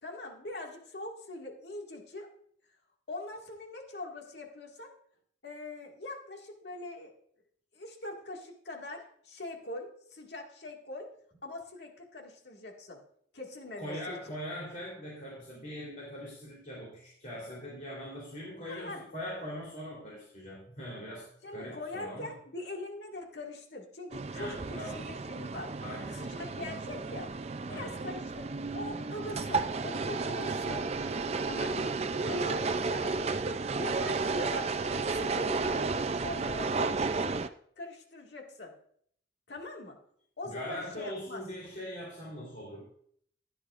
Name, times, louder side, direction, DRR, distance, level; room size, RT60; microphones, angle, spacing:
voice 1, 0.0-2.3 3.1-4.9 5.4-7.2 7.7-11.1 11.4-13.0 13.3-14.4 18.6-19.0 21.4-25.7 26.1-27.3 27.7-30.9 31.4-32.0 32.3-33.1 33.8-37.4 37.8-38.7 39.5-40.0 40.4-41.4, left 2 dB, 70° left, 0 dB, 1.9 m, -42 dB
voice 2, 13.8-22.3 24.3-25.1 25.8-26.2 27.7-27.9 32.2-32.6 40.4-42.8, equal, 45° left, -5 dB, 3.4 m, -41 dB
sound 1, 24.1-37.5, right 4 dB, 35° right, 0.4 m, -33 dB
15.5 x 10.5 x 2.5 m, 0.65 s
head